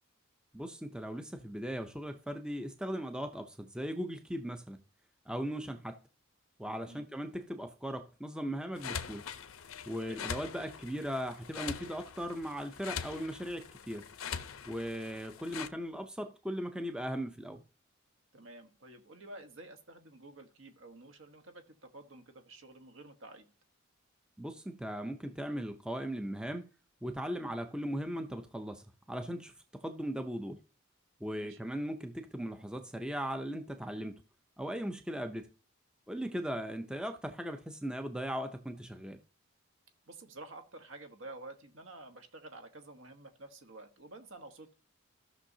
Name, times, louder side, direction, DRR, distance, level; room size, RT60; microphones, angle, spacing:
voice 1, 0.5-4.8 5.3-6.0 6.6-9.2 9.9-14.1 14.6-17.6 24.4-26.7 27.0-30.6 31.2-34.2 34.6-35.5 36.1-39.2, equal, 5° right, 0.5 m, -38 dB
sound 1, 8.7-15.7, left 7 dB, 80° left, 0.6 m, -43 dB
voice 2, 18.3-23.5 31.3-31.6 36.2-36.4 40.1-44.7, right 2 dB, 65° right, 1.2 m, -50 dB
14.0 x 6.2 x 2.7 m
head